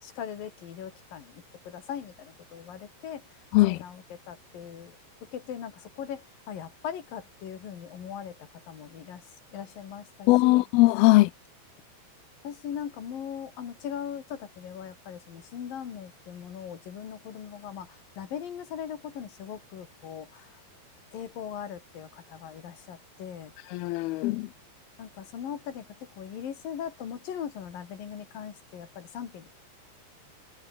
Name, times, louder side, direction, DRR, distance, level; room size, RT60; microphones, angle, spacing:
voice 1, 0.0-10.6 12.4-20.6 21.1-23.5 25.0-29.5, left 8 dB, 55° left, 4.2 m, -40 dB
voice 2, 10.3-11.3 23.7-24.5, left 20 dB, 90° left, 2.2 m, -20 dB
omnidirectional pair, 5.2 m